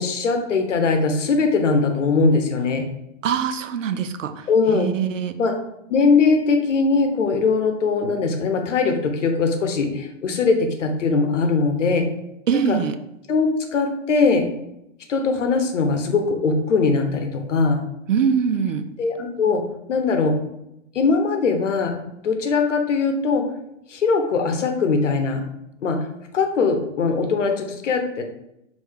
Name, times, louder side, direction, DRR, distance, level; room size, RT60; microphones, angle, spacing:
voice 1, 0.0-2.9 4.5-4.9 5.4-5.5 5.9-12.1 12.5-12.8 13.3-14.4 15.1-17.8 19.0-19.6 19.9-20.4 20.9-21.9 22.2-23.4 23.9-25.4 25.8-26.0 26.3-28.2, left 4 dB, 75° left, 4 dB, 0.8 m, -20 dB
voice 2, 3.2-5.3 12.5-13.0 18.1-18.8, right 7 dB, 85° right, 10 dB, 0.5 m, -23 dB
4.5 x 2.7 x 3.3 m, 0.83 s
hypercardioid pair, 115°, 37 cm